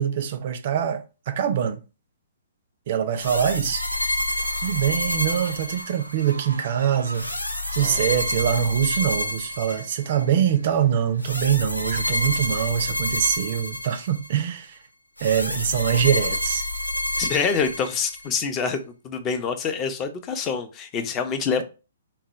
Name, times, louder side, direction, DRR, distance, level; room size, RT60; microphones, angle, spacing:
voice 1, 0.0-1.8 2.9-3.8 4.6-7.3 7.7-14.8 15.2-16.7, right 9 dB, 45° right, 0.5 m, -24 dB
sound 1, 3.2-6.3 7.1-10.2 11.2-14.4 15.2-18.3, left 1 dB, 85° left, 0.6 m, -28 dB
Fowl, 4.2-11.3, right 2 dB, 80° right, 0.7 m, -45 dB
voice 2, 17.2-21.6, left 5 dB, 25° left, 0.6 m, -26 dB
4.1 x 2.2 x 4.3 m
figure-of-eight pair, 120°, 0 cm